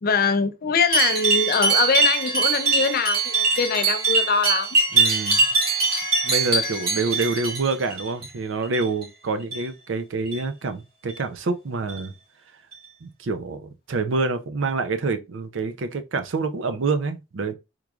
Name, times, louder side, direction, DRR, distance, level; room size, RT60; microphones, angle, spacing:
voice 1, 0.0-4.8, left 5 dB, 50° left, 0.5 m, -23 dB
sound 1, 0.9-8.3 8.6-9.1 9.4-9.7 10.3-10.4 11.1-11.2 11.9-12.0 12.7-12.8, right 4 dB, 55° right, 1.7 m, -22 dB
voice 2, 4.9-5.5 6.2-12.1 13.0-17.5, right 3 dB, 70° right, 0.5 m, -27 dB
3.6 x 3.1 x 2.4 m
head